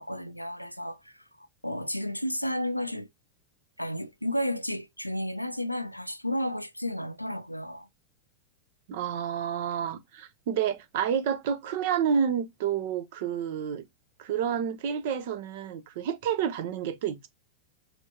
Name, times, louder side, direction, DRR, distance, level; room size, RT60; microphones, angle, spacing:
voice 1, 0.0-3.1 3.8-7.9, equal, 90° left, 0.4 m, -32 dB
voice 2, 8.9-13.8 14.2-17.3, right 8 dB, 50° right, 0.8 m, -29 dB
4.4 x 3.5 x 2.8 m
figure-of-eight pair, 90°, 0 cm